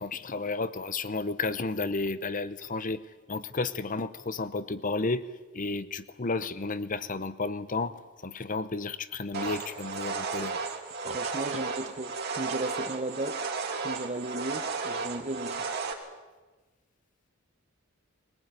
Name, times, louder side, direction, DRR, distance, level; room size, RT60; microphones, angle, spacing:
voice 1, 0.0-5.3 5.5-7.9 8.2-10.6, left 3 dB, 40° left, 0.9 m, -32 dB
sound 1, 9.3-15.9, right 4 dB, 50° right, 2.9 m, -34 dB
voice 2, 11.0-13.5 13.8-15.7, right 2 dB, 30° right, 1.0 m, -35 dB
21.0 x 20.0 x 9.4 m
head